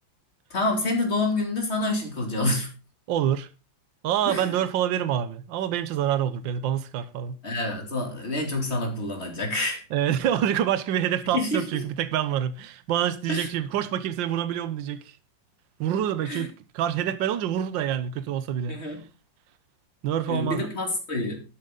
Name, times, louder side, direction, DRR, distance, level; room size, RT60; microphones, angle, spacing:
voice 1, 0.5-2.7 4.2-4.5 7.4-9.8 11.3-11.8 13.3-13.5 16.2-16.5 18.7-19.0 20.3-21.4, left 2 dB, 30° left, 3.1 m, -27 dB
voice 2, 3.1-3.5 4.0-7.4 9.9-15.1 15.8-19.0 20.0-20.6, right 10 dB, 75° right, 1.5 m, -26 dB
12.0 x 8.6 x 3.9 m
omnidirectional pair, 2.1 m